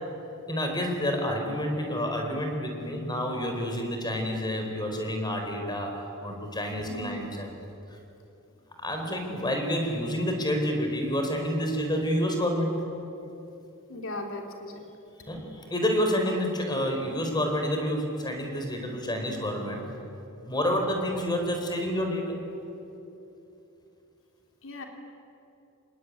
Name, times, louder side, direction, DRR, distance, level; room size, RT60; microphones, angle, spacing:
voice 1, 0.5-7.5 8.8-12.8 15.3-19.8 20.4-22.4, equal, 20° left, 3 dB, 4.3 m, -29 dB
voice 2, 6.9-7.2 13.9-14.8 24.6-24.8, left 2 dB, 65° left, 3 dB, 3.3 m, -37 dB
26.5 x 20.0 x 9.6 m, 2.9 s
head